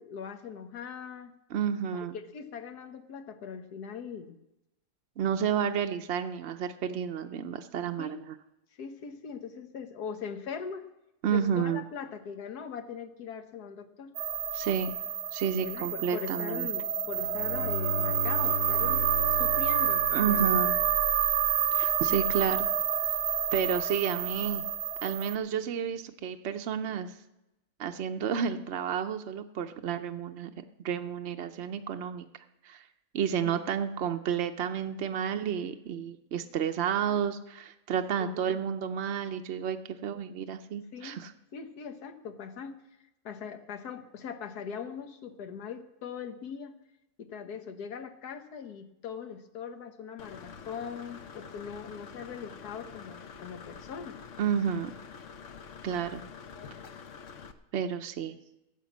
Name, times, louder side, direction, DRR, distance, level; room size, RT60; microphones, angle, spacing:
voice 1, 0.0-1.3 1.9-2.1 2.3-4.4 8.0-8.3 8.8-10.8 11.3-14.2 15.6-20.6 33.5-33.6 38.2-38.6 40.9-41.2 41.5-42.8 43.2-46.7 47.2-54.2, left 6 dB, 85° left, 8 dB, 1.5 m, -41 dB
voice 2, 1.5-2.2 5.2-8.3 11.2-11.8 14.5-14.9 15.3-16.7 20.1-20.8 21.7-22.7 23.5-24.6 25.0-27.1 27.8-32.3 32.6-32.8 33.1-41.3 54.4-54.9 55.8-56.2 57.7-58.4, right 8 dB, 55° right, 6 dB, 0.8 m, -31 dB
sound 1, 14.2-25.4, right 9 dB, 90° right, 1.4 m, -28 dB
Bowed string instrument, 17.0-21.0, left 2 dB, 30° left, 1.0 m, -36 dB
Engine / Mechanisms, 50.2-57.5, left 6 dB, 55° left, 1.1 m, -46 dB
14.5 x 8.6 x 7.3 m, 0.91 s
omnidirectional pair, 1.6 m